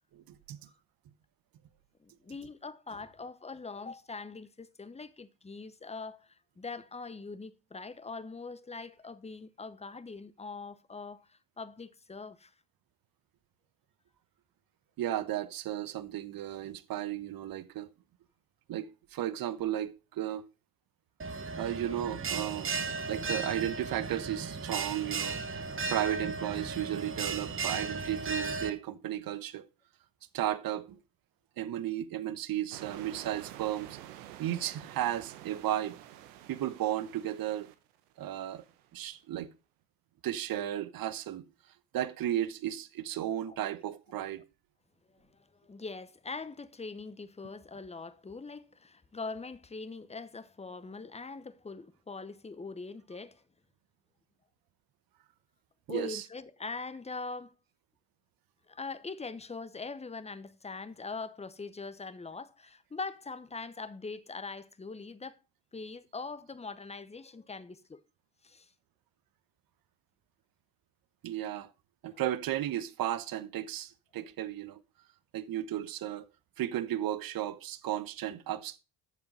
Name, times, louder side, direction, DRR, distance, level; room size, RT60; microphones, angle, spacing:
voice 1, 2.0-12.5 25.7-25.9 43.5-43.6 45.1-53.4 55.9-57.5 58.7-65.4 65.7-68.0 68.4-68.7 72.1-72.2, left 4 dB, 15° left, 0.9 m, -42 dB
voice 2, 15.0-17.9 18.7-20.5 21.6-22.7 23.1-25.6 25.9-29.7 30.3-31.0 31.6-34.0 34.4-36.0 36.5-37.7 38.2-38.6 38.9-39.5 40.2-41.4 41.9-44.4 55.9-56.3 71.2-71.7 72.0-74.8 75.3-76.2 76.6-78.8, right 12 dB, 50° right, 1.0 m, -34 dB
Bell, 21.2-28.7, right 4 dB, 25° right, 1.2 m, -35 dB
sound 1, 32.7-38.9, right 12 dB, 75° right, 1.0 m, -49 dB
8.2 x 7.1 x 5.3 m
hypercardioid pair, 50°, 46 cm